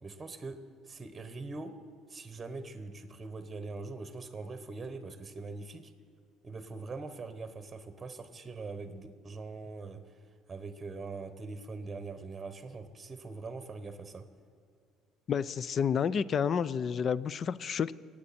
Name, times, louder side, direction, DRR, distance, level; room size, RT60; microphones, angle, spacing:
voice 1, 0.0-0.6 0.9-1.7 2.1-5.9 6.4-10.0 10.5-14.2, right 3 dB, 25° right, 9 dB, 1.1 m, -42 dB
voice 2, 15.3-17.9, left 7 dB, 45° left, 19 dB, 0.4 m, -30 dB
24.5 x 8.6 x 4.3 m, 2.2 s
supercardioid pair, 95°, 0 cm